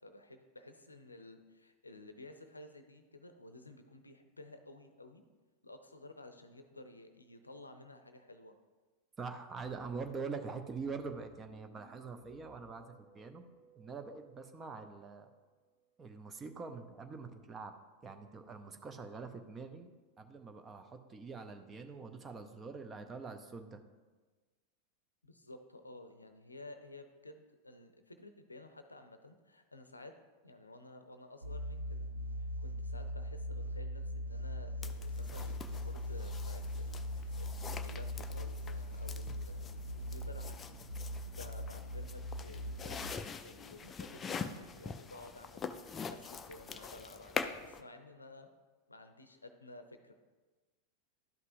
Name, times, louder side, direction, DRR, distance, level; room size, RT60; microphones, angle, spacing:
voice 1, 0.0-5.2 5.6-8.5 25.2-30.1 30.4-32.1 32.4-40.8 41.0-48.5 48.9-50.1, left 2 dB, 80° left, 8 dB, 0.6 m, -53 dB
voice 2, 9.2-13.4 13.8-15.3 16.0-17.7 18.0-19.9 20.2-23.8, right 4 dB, 20° right, 6 dB, 0.6 m, -44 dB
sound 1, 9.5-17.0, right 2 dB, 35° right, 1.1 m, -65 dB
sound 2, 31.4-43.2, left 1 dB, 80° right, 0.4 m, -40 dB
sound 3, 34.8-47.8, left 5 dB, 20° left, 0.4 m, -45 dB
12.0 x 5.4 x 2.6 m, 1.3 s
figure-of-eight pair, 90°, 0 cm